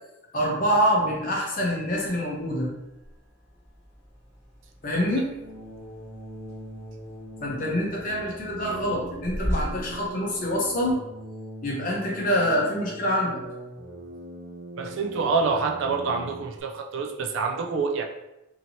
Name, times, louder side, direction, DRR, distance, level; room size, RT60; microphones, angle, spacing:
voice 1, 0.3-2.7 4.8-5.3 7.4-11.0 11.6-13.4, equal, 40° left, 0.8 m, -25 dB
sound 1, 1.8-10.9, equal, 10° right, 1.1 m, -39 dB
sound 2, 5.3-16.6, equal, 85° right, 0.8 m, -42 dB
voice 2, 14.8-18.0, right 4 dB, 65° right, 0.3 m, -26 dB
2.9 x 2.8 x 2.7 m
head